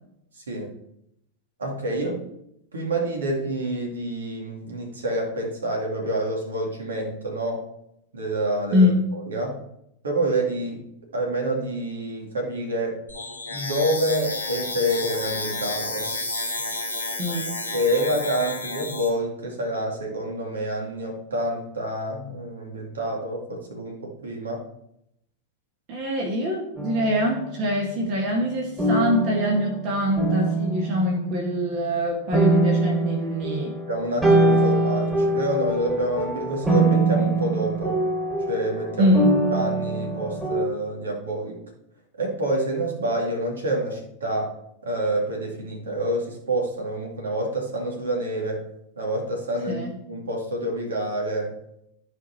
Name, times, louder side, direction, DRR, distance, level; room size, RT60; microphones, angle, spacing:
voice 1, 1.6-2.2 2.7-7.6 8.1-8.9 9.3-9.6 10.0-10.8 11.1-13.0 13.5-16.1 17.7-24.6 33.9-38.0 38.5-39.1 39.5-41.6 42.2-44.5 44.8-48.6 49.0-51.5, right 1 dB, 70° right, 0 dB, 2.5 m, -27 dB
voice 2, 8.7-9.1 17.2-17.6 25.9-33.8 39.0-39.3 49.7-49.9, left 1 dB, 40° right, 0 dB, 1.8 m, -24 dB
sound 1, 13.1-19.1, left 2 dB, 85° right, 3.2 m, -31 dB
sound 2, 26.8-27.9 28.8-32.0 32.3-40.7, right 2 dB, 15° right, 3.0 m, -23 dB
14.0 x 4.7 x 4.4 m, 0.80 s
figure-of-eight pair, 90°, 0 cm